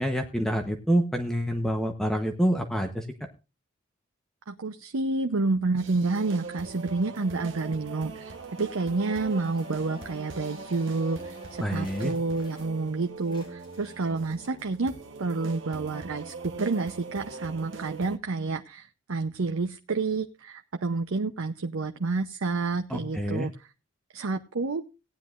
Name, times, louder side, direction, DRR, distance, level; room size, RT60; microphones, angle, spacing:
voice 1, 0.0-3.1 11.6-12.1 22.9-23.5, equal, ahead, 4 dB, 0.9 m, -27 dB
voice 2, 4.5-8.3 8.6-14.9 15.2-23.5 24.1-24.8, right 3 dB, 90° right, 7 dB, 0.7 m, -29 dB
sound 1, 5.8-18.2, right 3 dB, 65° right, 1.1 m, -42 dB
sound 2, 8.0-12.9 13.2-14.7, left 2 dB, 20° left, 4.7 m, -52 dB
18.0 x 10.0 x 2.5 m, 0.30 s
head